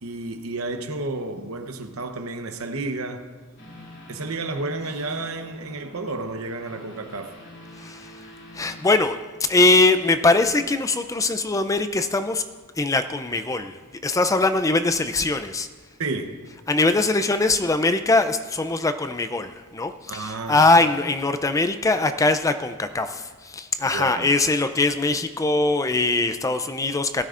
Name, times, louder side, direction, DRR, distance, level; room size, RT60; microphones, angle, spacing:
voice 1, 0.0-3.3 4.1-7.3 16.0-16.4 20.1-20.8 23.8-24.3, right 2 dB, 65° right, 0.9 m, -31 dB
sound 1, 3.6-8.8, left 1 dB, 55° left, 2.8 m, -45 dB
voice 2, 8.5-9.2 9.5-12.4 12.8-13.8 14.0-15.7 16.7-27.2, left 2 dB, 15° left, 0.4 m, -21 dB
19.0 x 12.5 x 2.5 m
head